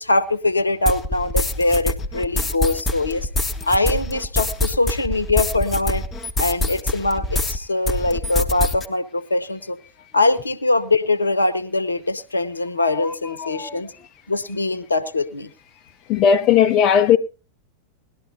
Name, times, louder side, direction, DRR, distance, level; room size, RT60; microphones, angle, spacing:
voice 1, 0.0-3.3 3.6-6.0 6.4-9.8 10.1-13.9 14.3-15.5, left 2 dB, 80° left, 0.9 m, -22 dB
sound 1, 0.9-7.6 7.9-8.9, left 2 dB, 15° left, 1.5 m, -25 dB
voice 2, 13.4-13.8 16.1-17.2, left 8 dB, 35° left, 0.7 m, -17 dB
19.5 x 12.5 x 2.7 m
figure-of-eight pair, 90°, 0 cm